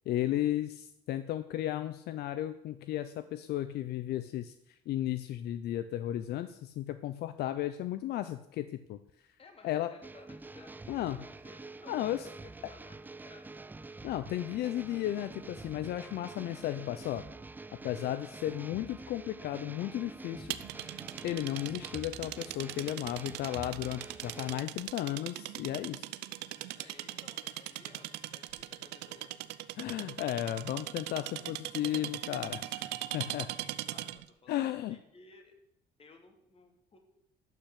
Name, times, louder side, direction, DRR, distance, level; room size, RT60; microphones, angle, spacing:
voice 1, 0.1-4.5 4.9-9.0 9.6-9.9 10.9-11.2 11.9-12.3 14.0-17.2 17.8-20.6 21.2-26.1 29.8-33.5 34.5-35.0, left 13 dB, 70° left, 11 dB, 0.6 m, -34 dB
voice 2, 9.4-13.5 26.8-29.3 33.1-34.6 34.9-35.5 36.0-37.0, left 3 dB, 35° left, 4 dB, 2.7 m, -57 dB
sound 1, 10.0-24.6, right 3 dB, 10° right, 0.4 m, -47 dB
sound 2, 20.5-34.3, right 15 dB, 85° right, 0.6 m, -40 dB
12.0 x 5.9 x 8.5 m, 0.78 s
cardioid pair, 110°, 17 cm